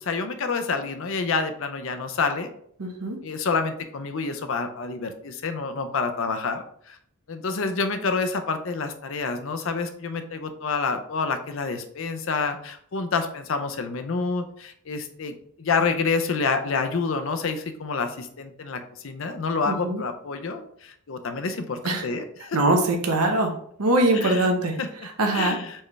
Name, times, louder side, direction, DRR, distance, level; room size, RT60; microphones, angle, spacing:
voice 1, 0.0-2.5 3.2-7.0 7.3-22.6 24.1-24.5 24.8-24.9 25.3-25.7, left 4 dB, 60° left, 7 dB, 0.5 m, -28 dB
voice 2, 2.8-3.2 19.7-20.0 21.8-22.1 22.5-23.5 23.8-24.7 25.0-25.6, right 2 dB, 90° right, 3 dB, 0.8 m, -22 dB
4.4 x 3.2 x 3.4 m, 0.65 s
head